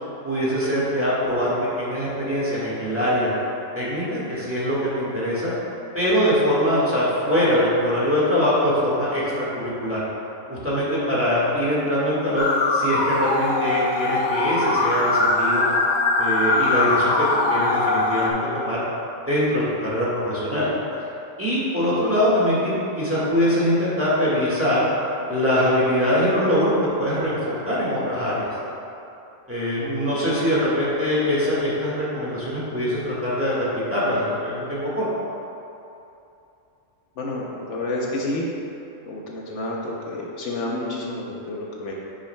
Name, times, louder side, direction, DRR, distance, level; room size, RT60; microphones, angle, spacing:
voice 1, 0.2-3.3 3.7-5.5 5.9-10.0 10.5-15.7 16.2-18.8 19.3-20.7 21.4-24.9 25.3-28.5 29.5-35.0, equal, 10° right, -8 dB, 1.5 m, -23 dB
sound 1, 12.4-18.3, left 3 dB, 55° left, 0.9 m, -21 dB
voice 2, 37.2-38.5 39.1-41.9, left 2 dB, 70° left, -3 dB, 1.1 m, -29 dB
9.7 x 6.3 x 2.2 m, 2.8 s
omnidirectional pair, 1.3 m